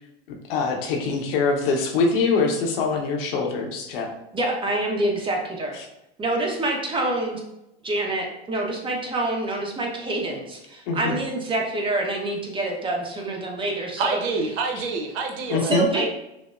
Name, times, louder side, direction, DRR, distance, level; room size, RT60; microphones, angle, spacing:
voice 1, 0.3-4.1 10.9-11.2 15.5-15.9, left 4 dB, 60° left, 2 dB, 0.8 m, -24 dB
voice 2, 4.3-5.7 6.2-7.4 7.8-14.2 15.6-16.1, right 2 dB, 15° right, 0 dB, 0.8 m, -26 dB
voice 3, 14.0-16.1, right 3 dB, 60° right, 3 dB, 0.8 m, -27 dB
5.8 x 2.0 x 2.4 m, 0.89 s
hypercardioid pair, 95°, 32 cm